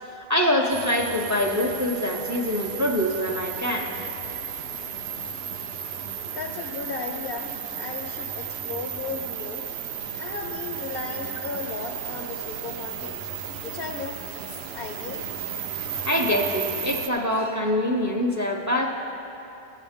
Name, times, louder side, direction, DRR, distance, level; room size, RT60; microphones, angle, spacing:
voice 1, 0.1-3.9 16.0-18.9, left 1 dB, 20° right, 0 dB, 0.5 m, -24 dB
sound 1, 0.7-17.1, right 8 dB, 65° right, 0.8 m, -34 dB
voice 2, 6.2-9.6 10.2-13.2 13.6-14.4 14.7-15.2, left 5 dB, 60° left, 3 dB, 0.7 m, -35 dB
14.0 x 8.2 x 3.6 m, 2.8 s
omnidirectional pair, 1.2 m